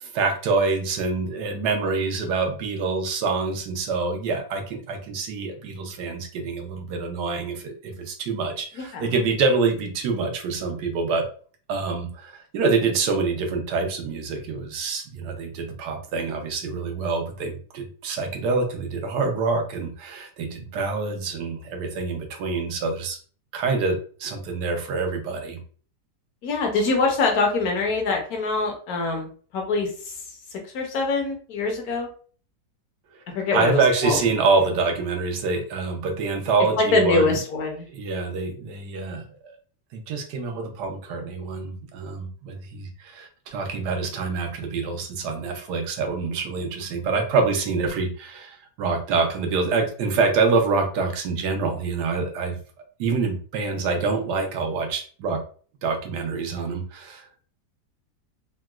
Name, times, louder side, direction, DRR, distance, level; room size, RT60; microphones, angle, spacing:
voice 1, 0.0-11.2 11.7-23.2 23.5-25.6 33.5-37.4 37.9-39.6 39.9-52.6 53.0-55.4 55.8-57.3, right 4 dB, 80° right, 4 dB, 1.3 m, -26 dB
voice 2, 8.8-9.1 26.4-29.3 29.5-30.1 30.7-32.1 33.3-34.2 36.8-37.9, left 3 dB, 65° left, 2 dB, 1.2 m, -24 dB
3.8 x 2.2 x 2.3 m, 0.42 s
omnidirectional pair, 1.8 m